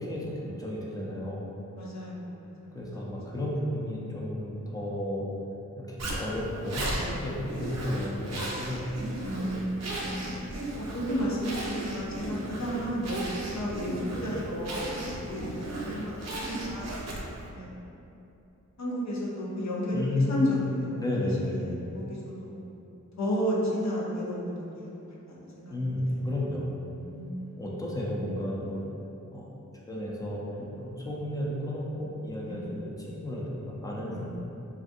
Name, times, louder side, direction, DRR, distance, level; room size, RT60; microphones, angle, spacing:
voice 1, 0.0-1.4 2.7-5.3 5.8-8.8 19.9-20.6 21.0-21.6 25.7-26.7 27.6-28.8 29.3-29.5 29.9-34.2, left 1 dB, 10° left, -5 dB, 0.5 m, -32 dB
voice 2, 1.7-2.5 9.2-10.3 10.8-14.9 15.1-16.9 17.2-17.7 18.8-21.0 21.4-22.6 23.2-24.9 25.3-26.2 27.0-27.6 32.4-32.8 34.1-34.2, equal, 60° left, -5 dB, 0.7 m, -33 dB
Zipper (clothing), 6.0-17.5, right 1 dB, 60° right, 0.5 m, -35 dB
3.3 x 2.5 x 2.6 m, 2.9 s
wide cardioid pair, 75°, 31 cm